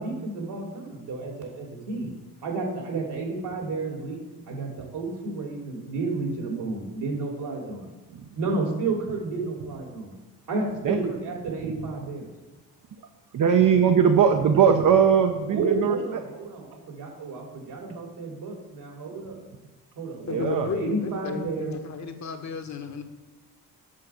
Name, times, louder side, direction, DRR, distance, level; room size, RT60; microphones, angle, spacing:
voice 1, 0.0-2.1 2.4-4.2 4.5-7.9 8.4-10.1 10.5-12.3 15.5-19.4 20.0-21.8, right 3 dB, 75° right, 0 dB, 3.1 m, -31 dB
voice 2, 13.3-16.0 20.2-20.7, right 7 dB, 55° right, 4 dB, 0.9 m, -20 dB
voice 3, 20.3-23.0, left 5 dB, 45° left, 6 dB, 1.3 m, -33 dB
7.6 x 5.7 x 6.3 m, 1.2 s
supercardioid pair, 70°, 39 cm